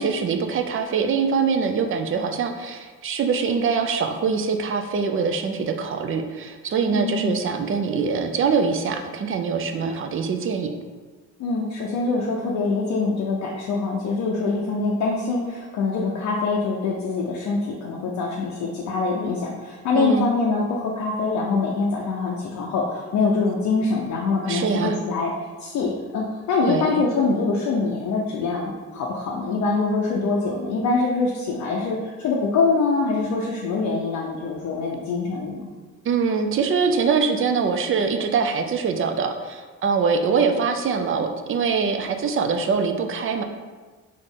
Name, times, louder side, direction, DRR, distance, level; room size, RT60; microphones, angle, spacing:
voice 1, 0.0-10.7 19.9-20.3 24.5-25.0 26.6-27.0 36.1-43.4, right 5 dB, 45° right, 5 dB, 0.5 m, -23 dB
voice 2, 6.9-7.3 11.4-25.3 25.6-35.7, left 4 dB, 75° left, -2 dB, 0.6 m, -24 dB
4.1 x 2.5 x 3.5 m, 1.4 s
cardioid pair, 90°, 30 cm